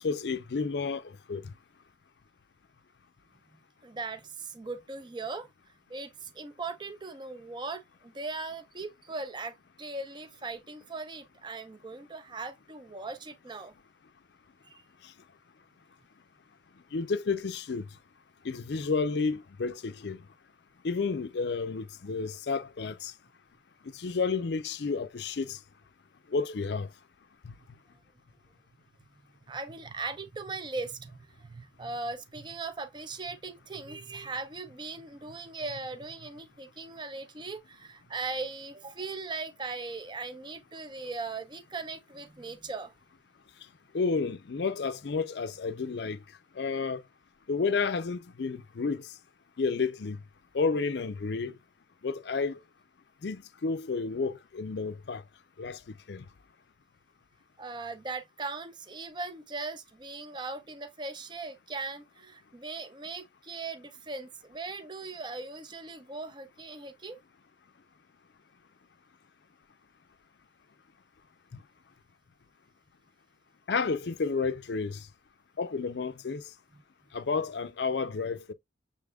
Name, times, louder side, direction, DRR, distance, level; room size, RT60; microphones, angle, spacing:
voice 1, 0.0-1.5 15.0-15.1 16.9-17.9 18.4-20.3 20.8-23.1 23.9-25.6 26.3-26.9 27.4-27.6 43.9-46.2 46.5-47.0 47.5-49.1 49.6-50.2 50.5-51.6 52.0-52.6 53.2-55.2 55.6-56.3 73.7-75.1 75.6-76.4 77.1-78.5, left 4 dB, 65° left, 0.5 m, -31 dB
voice 2, 3.8-5.5 5.9-13.7 14.6-14.8 29.5-42.9 57.6-67.2, right 3 dB, 25° right, 0.5 m, -39 dB
6.8 x 3.5 x 2.3 m
head